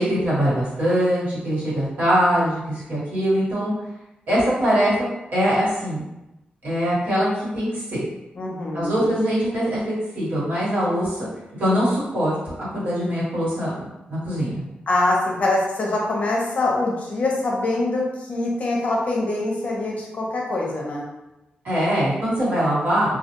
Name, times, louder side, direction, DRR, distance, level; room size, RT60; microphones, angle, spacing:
voice 1, 0.0-3.7 4.3-4.9 5.3-6.0 6.6-8.0 8.7-11.3 11.6-14.6 21.6-23.2, equal, 65° right, -9 dB, 1.3 m, -22 dB
voice 2, 8.4-9.1 14.9-21.1, left 2 dB, 45° left, -2 dB, 0.6 m, -24 dB
2.2 x 2.2 x 2.9 m, 0.94 s
wide cardioid pair, 165°, 3 cm